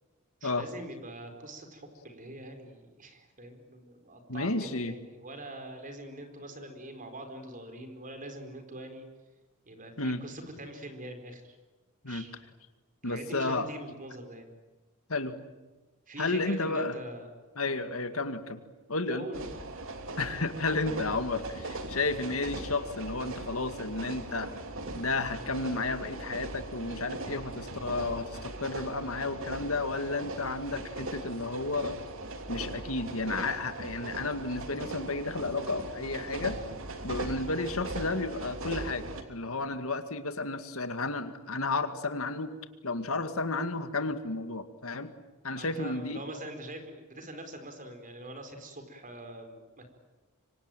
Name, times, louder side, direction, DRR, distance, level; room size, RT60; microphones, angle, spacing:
voice 1, 0.4-9.0 9.7-11.6 12.0-12.3 13.0-14.5 16.1-17.3 17.6-18.1 19.1-19.5 45.5-49.9, right 1 dB, 40° right, 6 dB, 4.5 m, -43 dB
voice 2, 4.3-4.9 10.0-10.2 12.0-12.2 13.0-13.7 15.1-15.4 16.2-17.0 17.6-18.6 18.9-19.3 20.2-24.5 24.9-31.9 32.5-36.6 37.0-42.5 42.8-45.1 45.4-46.2, left 3 dB, 70° left, 9 dB, 2.1 m, -32 dB
sound 1, 19.3-39.2, right 2 dB, 65° right, 3.0 m, -39 dB
25.5 x 25.5 x 9.1 m, 1.2 s
head